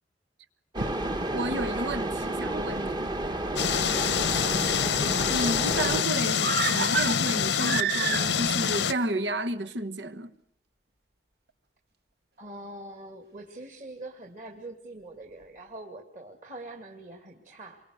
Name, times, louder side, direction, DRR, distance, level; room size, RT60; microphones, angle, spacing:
sound 1, 0.7-6.0, right 1 dB, 25° right, 1.0 m, -31 dB
voice 1, 1.3-3.1 5.3-10.3, right 1 dB, 85° right, 1.3 m, -32 dB
sound 2, 3.6-8.9, left 7 dB, 85° left, 0.9 m, -26 dB
voice 2, 4.3-4.7 12.4-17.8, right 2 dB, 45° right, 2.6 m, -43 dB
sound 3, 6.4-8.6 8.9-9.0, right 6 dB, 60° right, 1.1 m, -29 dB
28.0 x 24.0 x 6.5 m
head